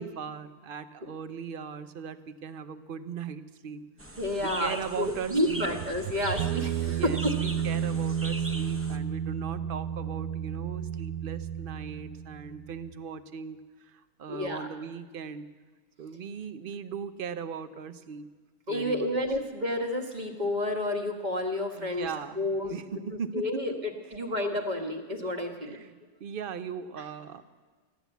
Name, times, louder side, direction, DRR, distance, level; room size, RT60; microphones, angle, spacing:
voice 1, 0.0-3.8 4.4-5.7 6.9-15.4 16.0-18.3 18.7-19.1 21.8-23.6 25.6-25.9 26.2-27.4, right 6 dB, 50° right, 12 dB, 0.7 m, -38 dB
sound 1, 4.0-9.0, right 1 dB, 15° right, 0.5 m, -42 dB
voice 2, 4.2-7.3 14.3-14.7 18.7-22.1 22.3-23.0 23.3-25.8, left 1 dB, 30° right, 3 dB, 1.5 m, -30 dB
sound 2, 5.5-12.9, right 8 dB, 85° right, 1.1 m, -32 dB
15.0 x 11.0 x 8.1 m, 1.4 s
omnidirectional pair, 1.5 m